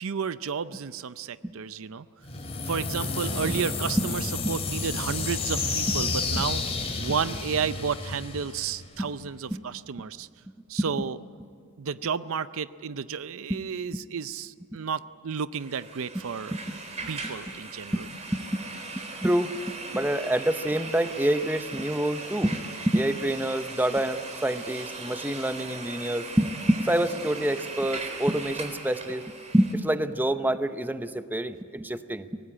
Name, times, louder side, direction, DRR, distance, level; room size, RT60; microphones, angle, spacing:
voice 1, 0.0-2.1 2.7-6.6 7.0-10.3 10.7-11.2 11.8-16.5 17.1-18.0, right 6 dB, 65° right, 15 dB, 0.5 m, -32 dB
sound 1, 2.2-9.1, left 3 dB, 30° left, 2.9 m, -31 dB
sound 2, 15.5-29.7, right 3 dB, 30° right, 3.5 m, -39 dB
voice 2, 18.3-18.7 18.9-19.6 19.9-32.4, right 1 dB, 10° right, 10 dB, 0.7 m, -27 dB
24.0 x 18.5 x 8.9 m, 2.4 s
head